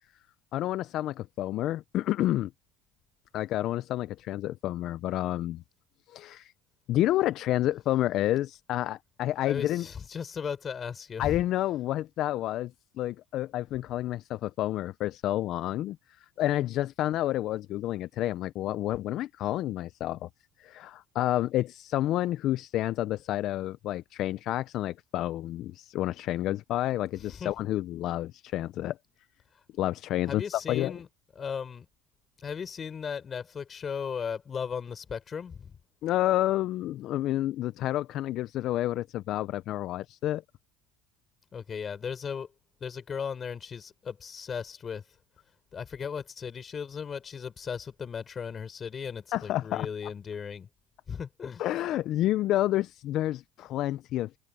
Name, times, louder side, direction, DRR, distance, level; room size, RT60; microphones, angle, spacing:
voice 1, 0.5-2.5 3.3-5.6 6.1-6.5 6.9-9.9 11.2-12.7 13.0-16.0 16.4-20.3 20.6-29.0 29.8-30.4 30.7-30.9 36.0-40.4 49.3-49.9 51.6-54.4, left 14 dB, 55° left, 0.5 m, -29 dB
voice 2, 9.4-11.4 27.3-27.5 30.3-31.1 31.4-31.9 32.4-35.8 41.5-42.5 42.8-45.0 45.7-50.7 51.1-51.6, left 6 dB, 30° left, 5.4 m, -36 dB
supercardioid pair, 120°, 0 cm